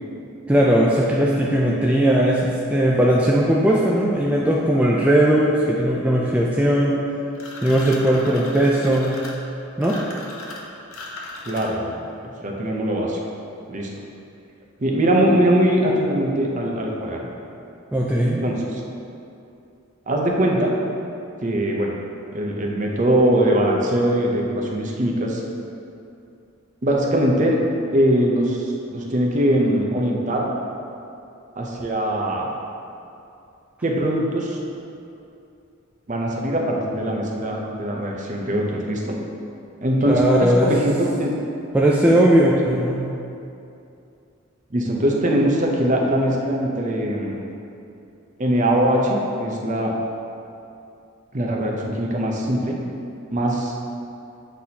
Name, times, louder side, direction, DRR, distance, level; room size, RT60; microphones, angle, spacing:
voice 1, 0.5-7.0 7.6-9.2 9.8-10.0 17.9-18.4 40.1-40.7 41.7-43.1, right 1 dB, 5° right, -5 dB, 0.3 m, -18 dB
sound 1, 7.3-11.9, left 2 dB, 85° left, 0.8 m, -37 dB
voice 2, 11.5-12.0 12.4-13.2 13.7-13.9 14.8-17.3 18.2-18.8 20.1-20.7 21.4-22.0 22.3-25.4 26.8-27.6 27.9-30.5 31.6-32.5 33.8-34.6 36.1-39.2 39.8-41.3 44.7-47.4 48.4-49.9 51.3-52.8 53.3-53.7, right 1 dB, 35° right, -1 dB, 0.6 m, -21 dB
8.1 x 4.1 x 2.8 m, 2.7 s
head